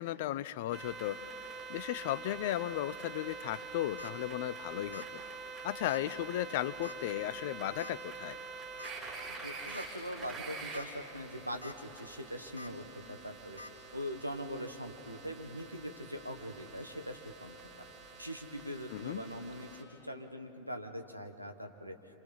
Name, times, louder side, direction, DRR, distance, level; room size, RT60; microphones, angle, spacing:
voice 1, 0.0-5.2 5.6-8.4 18.9-19.2, left 14 dB, 50° left, 17 dB, 0.6 m, -36 dB
sound 1, 0.7-19.8, right 4 dB, 20° right, 6.1 m, -46 dB
sound 2, 3.8-4.1 4.9-5.2 5.4-5.5 5.9-6.0 6.8-7.1 7.8-7.9 8.8-8.9 9.4-9.5 9.7-9.9 10.5-10.9 11.3-11.7 12.6-12.7 13.6-13.7, left 2 dB, 80° left, 1.9 m, -47 dB
voice 2, 9.4-13.6 13.9-17.6 18.2-22.0, equal, 90° right, 5 dB, 1.5 m, -42 dB
28.0 x 27.0 x 5.7 m, 2.9 s
figure-of-eight pair, 90°, 0 cm